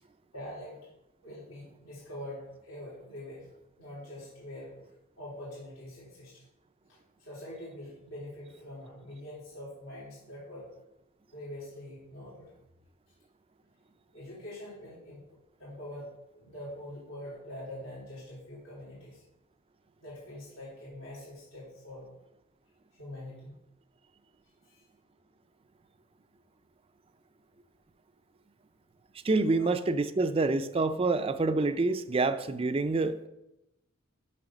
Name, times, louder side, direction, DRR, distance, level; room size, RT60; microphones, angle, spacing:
voice 1, 0.3-0.8 1.2-3.5 3.8-4.7 5.2-6.4 6.9-10.7 11.3-12.5 14.1-15.2 15.6-19.2 20.0-22.1 23.0-23.5 24.7-24.8 29.5-29.7, left 1 dB, 85° left, -8 dB, 3.3 m, -44 dB
voice 2, 29.2-33.3, right 3 dB, 25° right, 10 dB, 0.4 m, -27 dB
7.6 x 5.9 x 6.0 m, 0.91 s
head